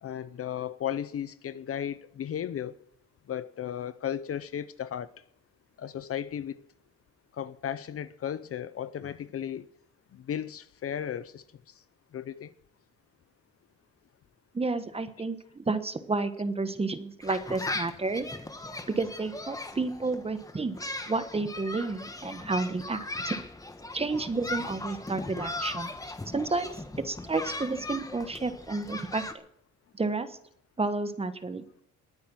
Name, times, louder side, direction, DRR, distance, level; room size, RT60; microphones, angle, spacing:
voice 1, 0.0-2.8 3.3-5.1 5.8-6.6 7.3-9.7 10.1-11.4 12.1-12.5, left 9 dB, 50° left, 0.7 m, -35 dB
voice 2, 14.5-18.3 18.9-20.8 21.1-23.4 23.9-29.4 30.0-30.4 30.8-31.6, right 3 dB, 20° right, 1.2 m, -31 dB
sound 1, 17.2-29.3, left 2 dB, 10° left, 1.3 m, -38 dB
19.5 x 9.6 x 6.2 m
cardioid pair, 125°, 30 cm